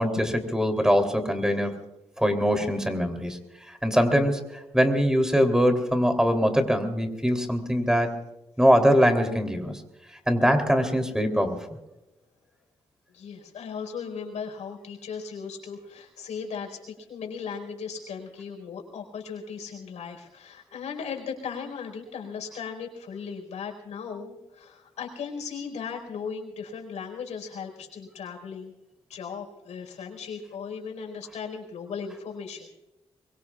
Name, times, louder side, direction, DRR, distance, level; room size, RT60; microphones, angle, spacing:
voice 1, 0.0-1.7 2.2-3.4 3.8-4.4 4.7-8.1 8.6-9.8 10.3-11.6, equal, 5° right, 6 dB, 3.3 m, -22 dB
voice 2, 13.1-28.7 29.1-32.7, left 6 dB, 85° left, 3 dB, 4.7 m, -37 dB
23.5 x 23.5 x 2.4 m, 0.97 s
cardioid pair, 75°, 11 cm